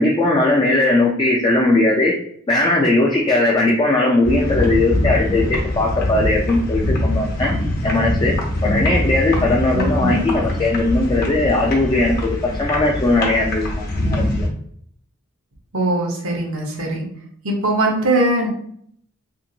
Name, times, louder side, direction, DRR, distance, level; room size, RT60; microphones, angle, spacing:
voice 1, 0.0-2.2 2.5-7.5 7.8-8.4 8.6-14.5, left 2 dB, 20° left, -3 dB, 0.4 m, -18 dB
sound 1, 4.2-14.5, left 1 dB, 50° left, 0.8 m, -23 dB
voice 2, 9.7-10.3 15.7-17.1 17.4-18.5, right 1 dB, 75° right, 0 dB, 0.9 m, -21 dB
2.9 x 2.7 x 2.7 m, 0.63 s
head